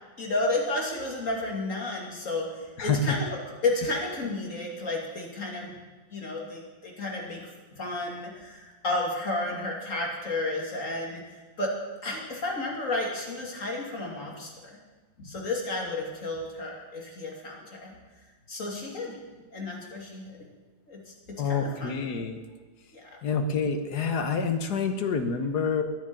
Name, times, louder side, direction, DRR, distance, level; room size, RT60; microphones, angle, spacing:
voice 1, 0.2-5.7 6.1-7.5 7.7-11.7 12.0-14.8 15.2-18.0 18.5-19.2 19.5-20.3 20.9-21.0 21.3-22.0 22.9-23.1, left 2 dB, 45° left, -1 dB, 3.1 m, -32 dB
voice 2, 2.8-3.1 21.4-22.4 23.2-25.8, left 5 dB, 60° left, 7 dB, 1.6 m, -27 dB
11.0 x 10.0 x 8.9 m, 1.3 s
omnidirectional pair, 2.0 m